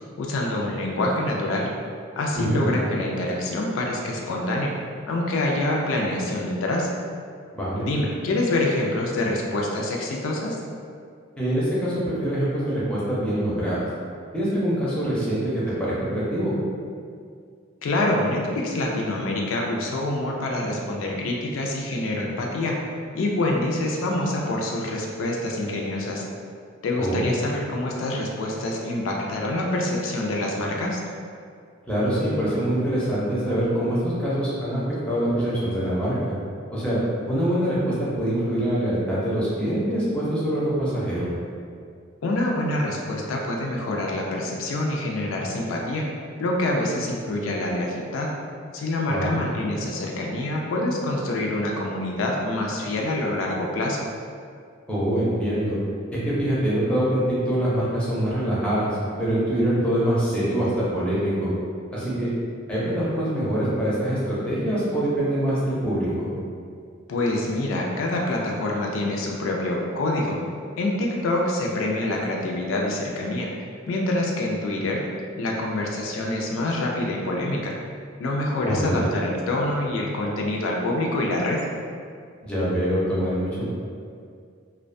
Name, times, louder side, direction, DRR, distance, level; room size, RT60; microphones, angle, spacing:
voice 1, 0.2-1.7 2.2-4.7 5.1-6.9 7.8-10.6 17.8-22.7 23.1-26.2 26.8-31.0 42.2-46.0 46.4-48.3 48.7-54.1 67.1-70.4 70.8-73.5 73.9-75.0 75.4-77.7 78.2-81.6, left 1 dB, 75° left, -1 dB, 0.3 m, -26 dB
voice 2, 7.5-7.8 11.4-13.9 14.3-16.5 27.0-27.3 31.9-36.1 36.7-37.0 37.2-41.3 49.1-49.4 54.9-55.8 56.1-61.5 61.9-62.3 62.7-66.3 78.6-79.1 82.4-83.6, right 1 dB, 5° left, -9 dB, 0.5 m, -24 dB
2.4 x 2.1 x 2.5 m, 2.2 s
head